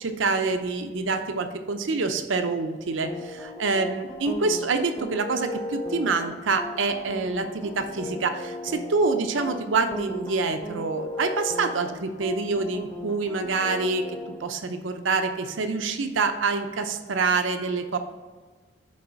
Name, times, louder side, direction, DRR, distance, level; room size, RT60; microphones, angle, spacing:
voice 1, 0.0-14.0 14.4-18.0, right 4 dB, 90° right, 7 dB, 0.7 m, -26 dB
sound 1, 3.0-14.3, left 1 dB, 15° left, 0.7 m, -37 dB
6.3 x 4.8 x 5.7 m, 1.4 s
head